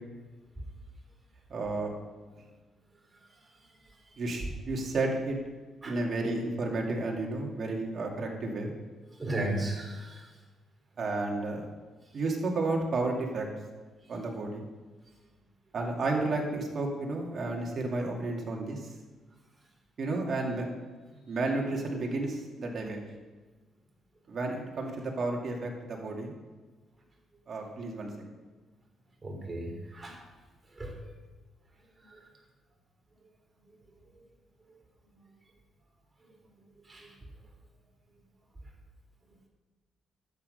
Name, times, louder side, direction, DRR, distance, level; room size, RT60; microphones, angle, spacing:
voice 1, 1.5-1.9 4.2-5.4 5.8-8.7 11.0-11.7 12.1-13.5 14.1-14.6 15.7-18.9 20.0-20.7 21.3-23.0 24.3-26.3 27.5-28.1, right 2 dB, 50° right, 0 dB, 2.5 m, -32 dB
voice 2, 9.2-10.2 29.2-30.2 30.8-30.9 32.1-32.2 36.9-37.1, right 1 dB, 25° right, 0 dB, 3.6 m, -34 dB
12.0 x 8.7 x 5.5 m, 1.3 s
cardioid pair, 90°, 0 cm